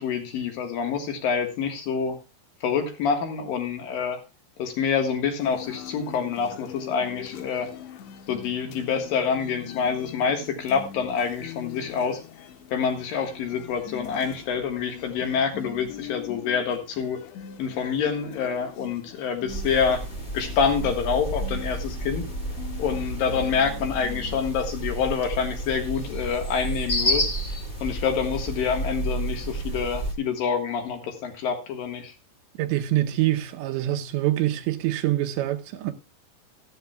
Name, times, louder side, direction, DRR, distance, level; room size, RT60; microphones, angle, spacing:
voice 1, 0.0-2.2 2.6-4.2 4.6-7.7 8.3-12.2 12.7-17.2 17.6-20.0 20.3-22.3 22.8-27.3 27.8-32.1, left 6 dB, 60° left, 2.9 m, -27 dB
sound 1, 5.4-24.4, left 9 dB, 90° left, 3.3 m, -42 dB
sound 2, 19.5-30.1, right 1 dB, 25° left, 0.9 m, -31 dB
voice 2, 32.6-35.9, right 14 dB, 80° right, 3.1 m, -25 dB
14.0 x 13.5 x 2.3 m
omnidirectional pair, 5.1 m